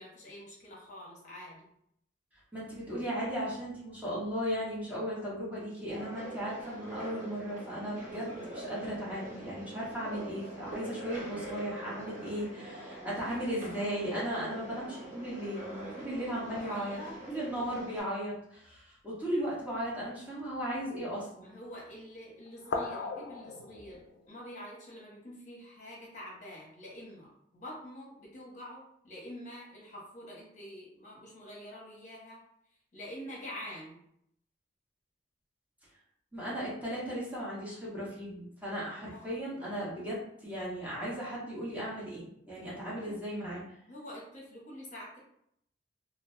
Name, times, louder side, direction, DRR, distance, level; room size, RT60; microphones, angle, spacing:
voice 1, 0.0-1.7 12.7-13.5 16.6-17.2 21.4-32.4 32.9-34.0 39.1-39.3 42.9-43.1 43.9-45.2, equal, 40° left, -4 dB, 0.8 m, -47 dB
voice 2, 2.5-17.0 17.3-21.5 36.3-43.6, equal, 10° right, -8 dB, 0.9 m, -36 dB
sound 1, 5.9-18.0, right 1 dB, 40° right, 1.2 m, -44 dB
sound 2, 13.3-14.4 16.5-18.8 19.6-19.8 20.1-20.8 21.7-22.1 22.5-24.3, left 3 dB, 85° left, 0.4 m, -42 dB
2.6 x 2.1 x 3.1 m, 0.71 s
head